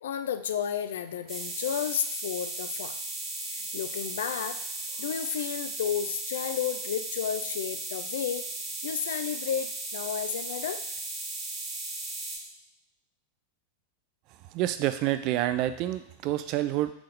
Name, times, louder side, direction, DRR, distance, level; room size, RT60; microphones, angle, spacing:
voice 1, 0.0-3.0 3.5-4.6 5.0-8.5 8.8-10.8, left 8 dB, 60° left, 10 dB, 0.3 m, -32 dB
sound 1, 1.3-12.4, right 2 dB, 25° right, 0.9 m, -36 dB
voice 2, 14.5-16.9, right 14 dB, 40° right, 11 dB, 0.3 m, -28 dB
3.9 x 3.7 x 3.4 m, 0.76 s
figure-of-eight pair, 90°, 0 cm